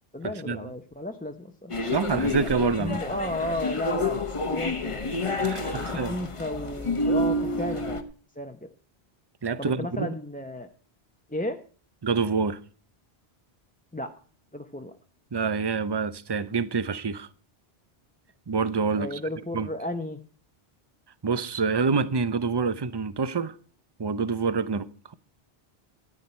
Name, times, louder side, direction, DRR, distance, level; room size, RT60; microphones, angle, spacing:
voice 1, 0.1-1.7 2.8-5.2 5.7-8.0 8.4-8.7 9.6-10.7 11.3-11.6 13.9-14.1 14.5-14.9 18.9-20.2, left 1 dB, 10° left, 0.7 m, -33 dB
sound 1, 1.7-8.0, left 2 dB, 30° left, 1.1 m, -29 dB
voice 2, 1.9-3.0 5.4-6.2 9.4-10.1 12.0-12.6 15.3-17.3 18.5-19.2 19.5-19.7 21.2-23.6 24.0-25.1, right 5 dB, 30° right, 0.6 m, -27 dB
13.5 x 9.9 x 4.4 m
omnidirectional pair, 1.1 m